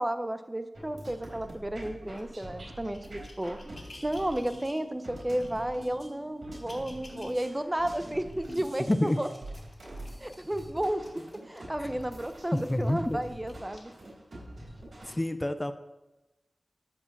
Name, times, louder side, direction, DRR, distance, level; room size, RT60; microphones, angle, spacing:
voice 1, 0.0-3.6 4.0-9.3 10.2-11.0 11.5-13.9, right 1 dB, 20° right, 9 dB, 0.8 m, -32 dB
sound 1, 0.7-15.1, right 1 dB, 70° right, 3.9 m, -45 dB
sound 2, 2.2-4.8 5.4-5.9 6.4-7.4 7.9-13.0 13.5-13.8 14.5-14.6, left 2 dB, 60° left, 2.4 m, -54 dB
voice 2, 8.9-9.2 11.8-11.9 12.5-13.2 15.0-15.7, left 1 dB, 20° left, 9 dB, 0.7 m, -28 dB
13.5 x 5.0 x 7.2 m, 1.0 s
wide cardioid pair, 70°, 0 cm